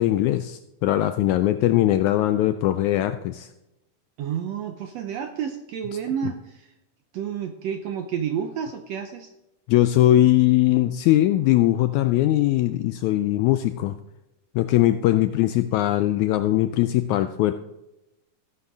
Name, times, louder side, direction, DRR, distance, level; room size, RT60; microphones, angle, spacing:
voice 1, 0.0-3.5 9.7-14.0 14.5-17.5, left 14 dB, 85° left, 10 dB, 1.7 m, -20 dB
voice 2, 4.2-6.7 7.1-9.3, right 8 dB, 75° right, 6 dB, 1.5 m, -30 dB
15.0 x 11.0 x 3.6 m, 0.91 s
omnidirectional pair, 3.8 m